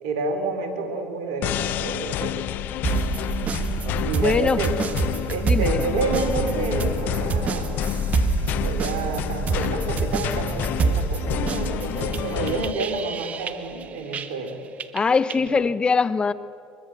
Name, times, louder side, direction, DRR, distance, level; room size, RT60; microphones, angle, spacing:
voice 1, 0.0-2.5 4.0-4.7 5.3-7.7 8.6-14.6 15.3-15.6, right 3 dB, 80° right, 4 dB, 3.9 m, -29 dB
sound 1, 1.4-12.7, left 13 dB, 65° left, 0.6 m, -29 dB
sound 2, 2.8-14.5 14.8-15.5, right 5 dB, 45° right, 1.6 m, -27 dB
sound 3, 3.1-13.3 13.6-13.9, left 2 dB, 5° left, 7.3 m, -37 dB
voice 2, 4.2-4.6 5.4-5.9 14.9-16.3, left 5 dB, 30° left, 16 dB, 0.8 m, -22 dB
23.0 x 23.0 x 7.5 m, 2.4 s
hypercardioid pair, 75°, 3 cm